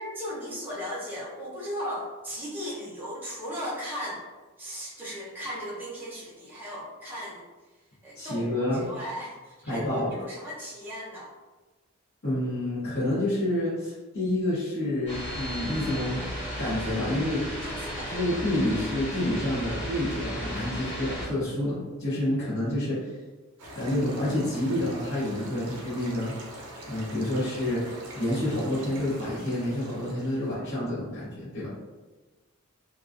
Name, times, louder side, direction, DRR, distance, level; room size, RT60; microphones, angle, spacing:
voice 1, 0.0-4.2 4.6-7.5 8.0-11.3 17.6-18.2 31.5-31.7, equal, 10° right, -7 dB, 0.6 m, -37 dB
voice 2, 8.1-8.9 9.7-10.1 12.2-16.2 16.6-17.4 18.1-23.1 23.7-26.3 26.9-27.8 28.1-31.7, left 1 dB, 60° left, -12 dB, 0.8 m, -28 dB
sound 1, 15.1-21.2, equal, 25° left, 1.0 m, -34 dB
sound 2, 23.6-30.6, right 1 dB, 80° right, 0.5 m, -43 dB
2.3 x 2.2 x 2.4 m, 1.2 s
head